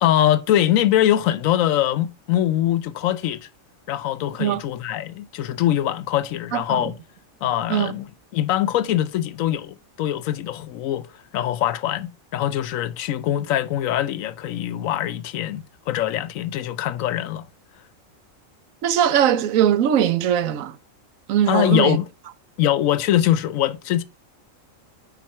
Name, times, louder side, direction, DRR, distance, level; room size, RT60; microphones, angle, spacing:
voice 1, 0.0-3.5 3.9-6.9 7.4-8.1 8.3-11.1 11.3-17.4 21.5-22.1 22.6-24.0, left 12 dB, 85° left, 1.0 m, -22 dB
voice 2, 6.5-6.9 7.7-7.9 18.8-20.8 21.3-22.0, right 10 dB, 90° right, 1.1 m, -20 dB
5.8 x 4.6 x 4.4 m
omnidirectional pair, 1.4 m